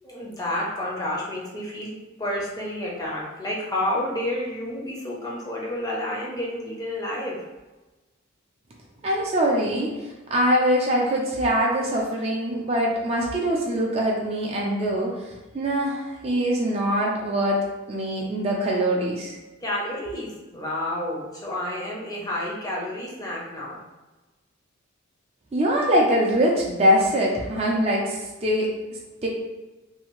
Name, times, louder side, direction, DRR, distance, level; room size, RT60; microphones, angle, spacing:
voice 1, 0.0-1.9 2.2-7.4 19.6-23.8, left 1 dB, 20° left, -4 dB, 0.6 m, -30 dB
voice 2, 9.0-19.4 25.5-28.8 29.2-29.3, equal, 30° right, -2 dB, 0.4 m, -23 dB
2.7 x 2.4 x 2.9 m, 1.1 s
head